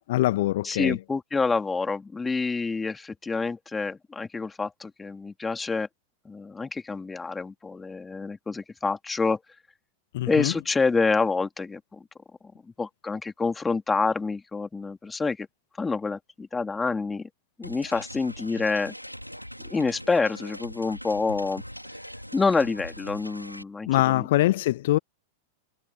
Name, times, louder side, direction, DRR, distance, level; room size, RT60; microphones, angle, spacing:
voice 1, 0.0-1.0 10.1-10.5 23.9-25.0, left 16 dB, 55° left, 1.4 m, -23 dB
voice 2, 0.6-5.9 6.2-9.4 10.3-12.0 12.8-15.5 15.8-17.3 17.6-18.9 19.7-21.6 22.3-24.3, left 4 dB, 10° left, 3.2 m, -27 dB
sound 1, 17.6-23.6, equal, 90° left, 3.5 m, -41 dB
figure-of-eight pair, 90°, 0 cm